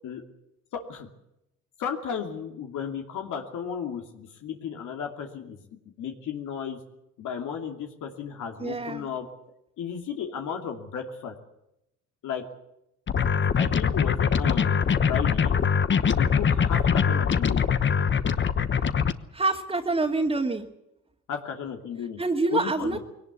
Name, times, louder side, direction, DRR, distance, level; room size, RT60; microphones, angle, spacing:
voice 1, 0.7-1.1 1.8-5.6 6.0-6.8 7.2-9.3 9.8-11.3 12.2-12.4 13.5-15.5 16.1-17.7 21.3-22.2 22.5-23.0, left 7 dB, 80° left, 3 dB, 2.7 m, -34 dB
voice 2, 8.6-9.1 19.3-20.7 22.2-23.0, right 3 dB, 20° right, -1 dB, 2.2 m, -26 dB
sound 1, 13.1-19.1, left 6 dB, 40° left, 1.1 m, -23 dB
21.5 x 18.5 x 8.3 m, 0.85 s
cardioid pair, 90°, 30 cm